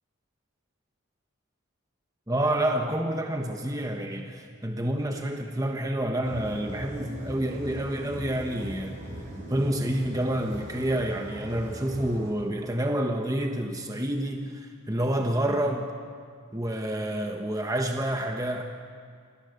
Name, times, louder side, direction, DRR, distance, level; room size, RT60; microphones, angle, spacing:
voice 1, 2.3-9.0 9.5-15.9 16.5-18.6, right 1 dB, 15° right, 3 dB, 1.1 m, -28 dB
sound 1, 6.2-12.3, right 1 dB, 35° right, 4.7 m, -39 dB
26.0 x 17.5 x 6.6 m, 2.1 s
head